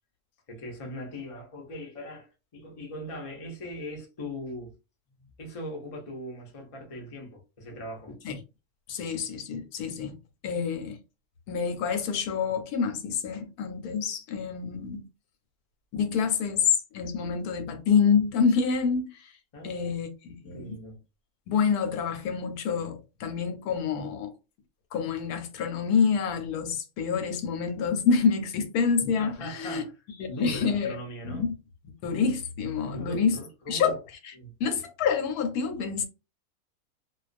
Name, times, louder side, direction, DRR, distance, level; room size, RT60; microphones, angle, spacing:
voice 1, 0.5-4.7 5.4-8.2 19.5-19.9 20.4-21.0 29.2-30.0 30.3-31.5 32.8-34.0 34.3-34.5, equal, 55° left, 0.3 m, -40 dB
voice 2, 8.9-10.1 10.4-11.0 11.5-15.1 15.9-16.7 16.9-19.1 19.6-20.8 21.5-24.3 24.9-29.8 30.2-31.0 31.2-31.5 32.0-33.4 33.7-34.0 34.6-36.0, left 6 dB, 85° left, 1.1 m, -27 dB
2.3 x 2.2 x 2.4 m
omnidirectional pair, 1.6 m